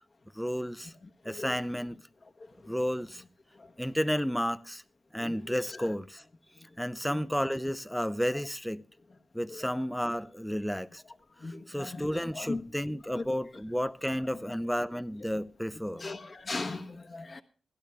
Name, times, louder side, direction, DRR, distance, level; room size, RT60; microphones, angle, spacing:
voice 1, 0.3-0.9 1.2-2.0 2.7-3.2 3.8-4.8 5.1-6.2 6.8-8.8 9.3-11.0 11.4-16.0, equal, ahead, 0.5 m, -32 dB
voice 2, 11.4-12.0 12.5-12.6 13.2-13.3 16.0-17.4, left 3 dB, 45° left, 1.2 m, -37 dB
17.0 x 12.0 x 3.4 m
cardioid pair, 85°, 0 cm